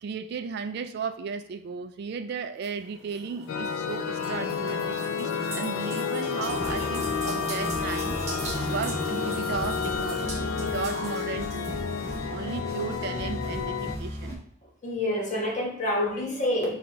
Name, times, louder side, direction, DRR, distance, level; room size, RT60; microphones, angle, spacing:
voice 1, 0.0-8.2 8.6-11.7 12.1-14.4, right 5 dB, 55° right, 9 dB, 0.3 m, -35 dB
sound 1, 2.6-12.2, right 1 dB, 35° right, 1.0 m, -38 dB
sound 2, 3.5-14.0, left 6 dB, 80° left, 0.4 m, -31 dB
sound 3, 6.5-14.4, equal, 15° left, 0.9 m, -36 dB
voice 2, 14.8-16.7, left 1 dB, 40° left, -3 dB, 1.2 m, -27 dB
3.8 x 2.4 x 4.3 m, 0.68 s
head